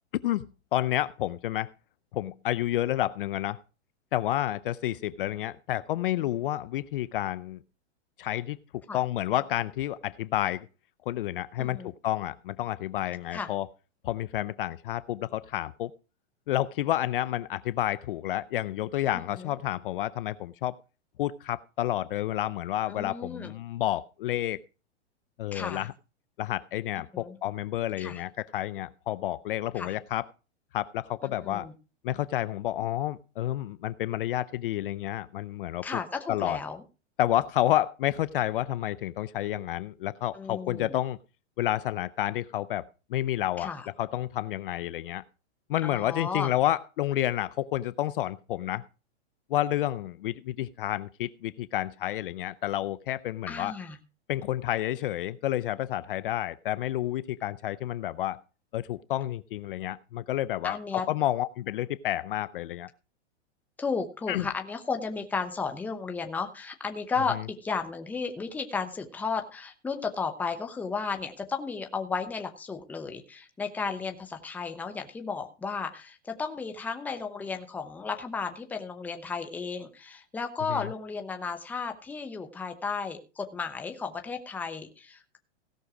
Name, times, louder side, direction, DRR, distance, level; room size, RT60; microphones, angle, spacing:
voice 1, 0.7-1.7 2.1-3.6 4.1-7.6 8.2-8.6 8.9-10.7 11.1-13.7 14.0-15.9 16.5-20.7 21.2-24.6 25.4-25.9 26.4-30.2 30.7-31.7 32.0-35.9 36.3-36.6 37.2-41.2 41.6-43.7 44.0-45.2 45.7-48.8 49.5-53.7 54.3-58.4 58.7-62.9 64.3-64.5 80.7-80.9, left 13 dB, 50° left, 16 dB, 0.5 m, -30 dB
voice 2, 11.6-11.9 13.3-13.5 19.3-19.5 22.9-23.5 25.5-25.9 27.1-27.4 28.0-28.2 29.8-29.9 31.2-31.7 35.8-36.8 40.3-41.0 43.6-43.9 45.8-46.5 53.5-54.0 60.6-61.1 63.8-85.4, left 5 dB, 5° left, 5 dB, 0.8 m, -34 dB
17.0 x 6.3 x 4.9 m, 0.33 s
hypercardioid pair, 160°, 35 cm